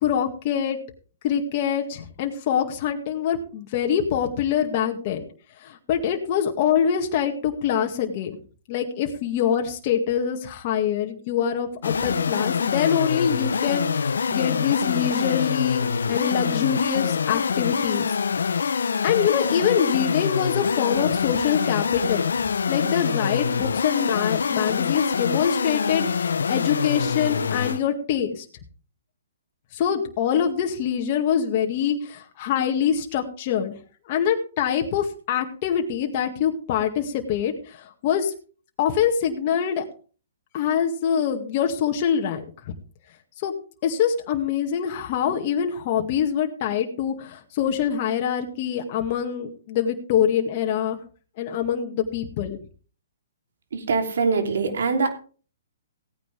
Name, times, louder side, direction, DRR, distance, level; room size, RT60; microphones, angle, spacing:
voice 1, 0.0-0.8 1.2-5.2 5.6-8.4 8.7-18.2 19.0-28.5 29.7-33.8 34.1-38.3 38.8-39.9 40.5-42.7 43.4-43.5 43.8-51.0 51.4-52.6, left 8 dB, 40° left, 2 dB, 2.0 m, -25 dB
sound 1, 11.8-27.8, left 6 dB, 80° left, 0.7 m, -25 dB
voice 2, 53.7-55.1, right 4 dB, 70° right, 5 dB, 3.2 m, -23 dB
17.0 x 9.5 x 3.5 m, 0.39 s
hypercardioid pair, 145°, 0 cm